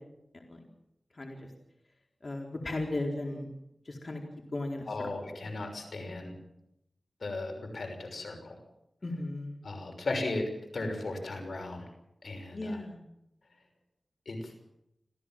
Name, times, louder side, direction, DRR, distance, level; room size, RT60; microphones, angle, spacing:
voice 1, 0.3-0.7 1.1-1.5 2.2-3.5 3.8-4.2 4.5-5.4 9.0-9.6 12.5-13.0, left 2 dB, 55° left, 1 dB, 4.1 m, -36 dB
voice 2, 4.9-6.4 7.2-8.6 9.6-11.9 12.2-12.8 14.3-14.5, left 2 dB, 80° left, 4 dB, 6.0 m, -36 dB
27.0 x 16.0 x 7.6 m, 0.85 s
wide cardioid pair, 60°, 0 cm